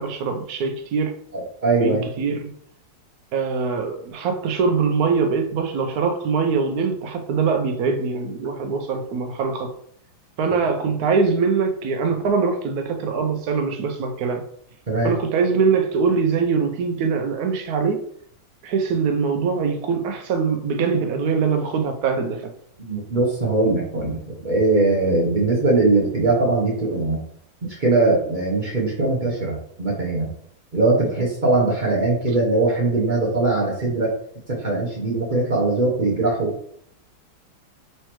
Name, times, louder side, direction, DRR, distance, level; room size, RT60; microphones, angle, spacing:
voice 1, 0.0-1.2 1.8-2.5 3.3-9.7 10.4-14.4 15.0-18.0 18.6-22.4, right 5 dB, 70° right, 0.9 m, -23 dB
voice 2, 1.3-2.0 14.9-15.1 22.9-27.2 27.8-30.3 30.7-34.1 34.5-36.5, right 2 dB, 35° right, 0.8 m, -21 dB
5.4 x 3.2 x 3.0 m
omnidirectional pair, 2.0 m